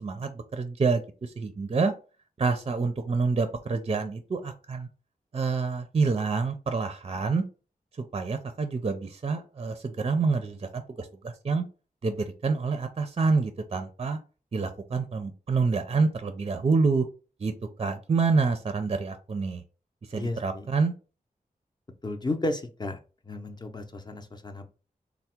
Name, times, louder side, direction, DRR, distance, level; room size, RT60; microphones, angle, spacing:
voice 1, 0.0-1.9 2.4-4.9 5.3-7.4 8.0-11.6 12.0-14.2 14.5-17.1 17.4-17.5 17.8-19.6 20.1-20.9, right 4 dB, 40° right, 8 dB, 0.4 m, -27 dB
voice 2, 20.1-20.7 22.0-23.0 23.2-24.7, left 2 dB, 30° left, 4 dB, 0.6 m, -33 dB
3.4 x 2.1 x 4.3 m, 0.34 s
wide cardioid pair, 100°, 15 cm